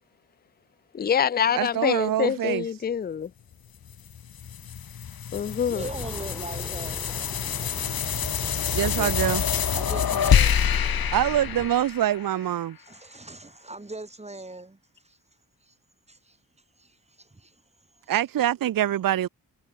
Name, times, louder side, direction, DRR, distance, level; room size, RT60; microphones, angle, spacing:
voice 1, 0.9-3.3 5.3-5.9, left 8 dB, 30° left, 0.4 m, -25 dB
voice 2, 1.6-2.6 8.7-9.4 11.1-12.8 18.1-19.3, right 12 dB, 70° right, 0.6 m, -24 dB
sound 1, 3.9-12.5, left 8 dB, 80° left, 2.6 m, -26 dB
voice 3, 5.6-7.0 8.8-9.2 9.7-10.6 12.8-14.8 15.0-15.2 15.6-15.7 16.1-16.4 16.8-17.5, right 2 dB, 20° right, 5.0 m, -40 dB
sound 2, 5.8-11.7, left 1 dB, 5° left, 3.0 m, -41 dB
wide cardioid pair, 115°, 35 cm